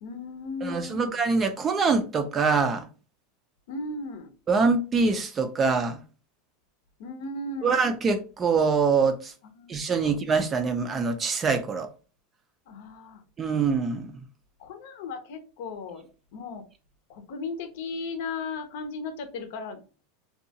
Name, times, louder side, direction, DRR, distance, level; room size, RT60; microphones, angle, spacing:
voice 1, 0.0-1.1 3.7-4.3 7.0-7.8 9.6-9.7 10.0-10.1 12.7-13.2 14.6-16.0 16.3-16.6 17.1-19.8, left 3 dB, 70° left, 0.6 m, -36 dB
voice 2, 0.6-2.9 4.5-6.0 7.6-9.3 9.7-11.9 13.4-14.1, right 4 dB, 25° right, 0.4 m, -24 dB
2.7 x 2.3 x 2.7 m
supercardioid pair, 135°, 0 cm